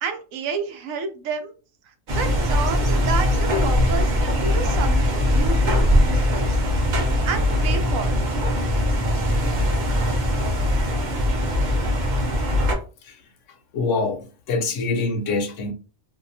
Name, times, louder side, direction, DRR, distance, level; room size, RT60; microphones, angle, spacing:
voice 1, 0.0-1.5 2.1-6.5 7.3-8.2, right 5 dB, 80° right, 1.0 m, -30 dB
sound 1, 2.1-12.8, left 1 dB, 50° right, 0.6 m, -21 dB
voice 2, 13.7-15.7, left 3 dB, 70° left, 0.9 m, -25 dB
2.7 x 2.2 x 2.6 m
omnidirectional pair, 1.4 m